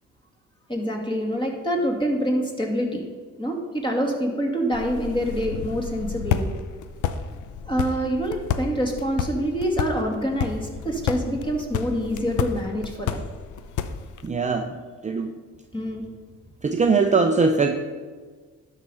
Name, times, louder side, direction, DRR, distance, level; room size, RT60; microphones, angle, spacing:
voice 1, 0.7-3.0 3.4-6.4 7.7-13.2 15.7-16.1, equal, 15° left, 0 dB, 2.2 m, -26 dB
sound 1, 4.7-14.3, left 7 dB, 80° left, 0.7 m, -31 dB
voice 2, 14.2-15.3 16.6-17.7, right 4 dB, 25° right, 5 dB, 0.6 m, -21 dB
12.0 x 4.9 x 5.6 m, 1.5 s
cardioid pair, 90°, 30 cm